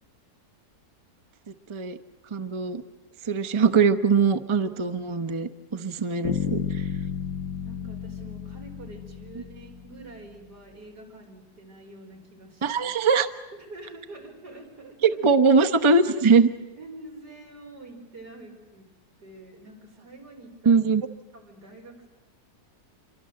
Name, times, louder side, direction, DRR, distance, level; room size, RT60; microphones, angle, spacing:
voice 1, 2.3-2.8 3.3-6.8 12.6-13.3 15.0-16.5 20.6-21.1, right 4 dB, 25° right, 10 dB, 0.8 m, -21 dB
voice 2, 4.6-5.0 7.6-12.9 13.5-15.2 16.8-18.9 19.2-20.8 21.3-22.1, right 2 dB, 90° right, 2 dB, 5.2 m, -46 dB
Bass guitar, 6.2-10.2, left 7 dB, 55° left, 1.5 m, -32 dB
27.5 x 23.5 x 7.8 m, 1.1 s
omnidirectional pair, 1.7 m